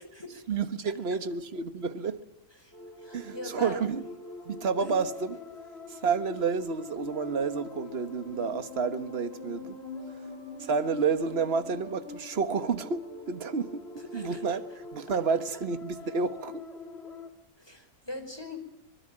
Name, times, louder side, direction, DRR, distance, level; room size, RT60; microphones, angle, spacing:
voice 1, 0.5-2.2 3.1-4.0 4.4-5.4 5.9-9.8 10.6-13.0 13.3-13.8 14.1-16.6, right 5 dB, 40° right, 1.5 m, -30 dB
sound 1, 2.7-17.3, left 3 dB, 40° left, 3.5 m, -44 dB
voice 2, 3.0-3.8 4.8-4.9 14.1-14.4 17.6-18.6, left 1 dB, 15° left, 4.9 m, -40 dB
24.5 x 21.0 x 8.9 m
omnidirectional pair, 1.7 m